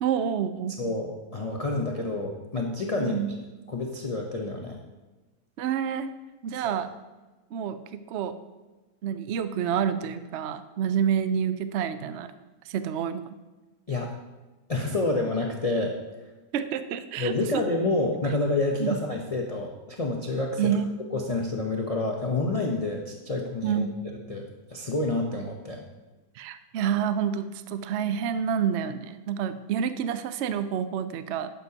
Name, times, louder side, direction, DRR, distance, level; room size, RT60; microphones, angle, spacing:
voice 1, 0.0-0.7 3.0-3.3 5.6-6.1 6.4-6.9 7.5-8.3 9.0-12.3 12.7-13.2 16.5-17.6 18.8-19.0 20.6-21.0 23.6-23.9 26.3-31.5, right 8 dB, 65° right, 11 dB, 0.7 m, -28 dB
voice 2, 0.8-3.2 3.7-4.8 6.5-6.7 13.9-14.1 14.7-16.0 17.2-20.7 21.1-23.9 24.3-25.8, left 2 dB, 30° left, 0 dB, 0.7 m, -28 dB
11.5 x 9.3 x 2.8 m, 1.2 s
omnidirectional pair, 1.7 m